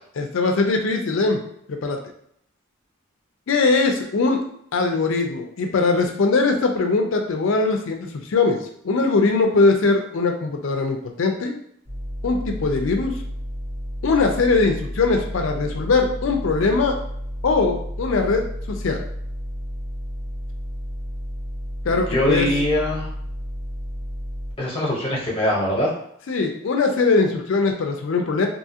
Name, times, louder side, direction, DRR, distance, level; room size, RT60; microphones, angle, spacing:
voice 1, 0.2-1.4 1.7-2.0 3.5-4.4 4.7-11.6 12.2-13.1 14.0-17.0 17.4-19.0 21.9-22.5 26.3-28.5, left 3 dB, 65° left, 3 dB, 0.4 m, -21 dB
sound 1, 11.8-24.5, equal, 65° right, 0.9 m, -32 dB
voice 2, 21.9-23.1 24.6-25.9, left 1 dB, 25° left, -4 dB, 0.8 m, -22 dB
2.7 x 2.4 x 2.7 m, 0.70 s
head